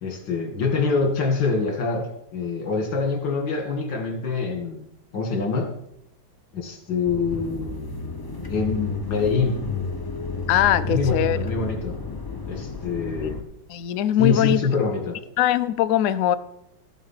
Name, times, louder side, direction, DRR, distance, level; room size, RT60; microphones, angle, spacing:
voice 1, 0.0-4.9 5.1-5.7 6.5-7.9 8.5-9.6 10.8-12.0 12.5-13.4 14.2-15.2, left 4 dB, 65° left, 3 dB, 2.6 m, -25 dB
sound 1, 7.1-13.4, left 4 dB, 25° left, 0.5 m, -31 dB
voice 2, 10.5-11.4 13.2-13.3 13.7-14.6 15.4-16.3, left 11 dB, 90° left, 13 dB, 0.6 m, -21 dB
14.0 x 7.3 x 5.7 m, 0.80 s
omnidirectional pair, 2.2 m